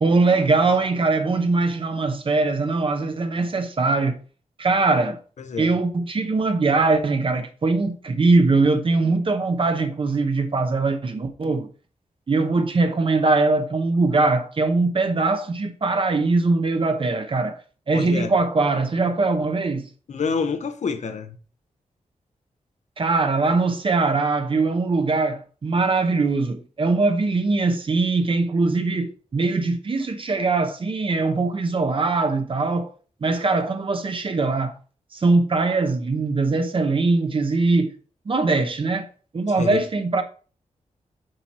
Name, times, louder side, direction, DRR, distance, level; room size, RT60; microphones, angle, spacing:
voice 1, 0.0-4.2 4.6-5.2 5.6-11.7 12.3-17.6 17.9-19.9 23.0-32.9 33.2-34.8 35.1-37.9 38.3-39.1 39.3-40.2, right 3 dB, 45° right, 0.9 m, -21 dB
voice 2, 5.4-5.7 17.9-18.3 20.1-21.4 39.6-39.8, left 5 dB, 65° left, 0.9 m, -27 dB
7.7 x 4.6 x 4.2 m
wide cardioid pair, 130°, 13 cm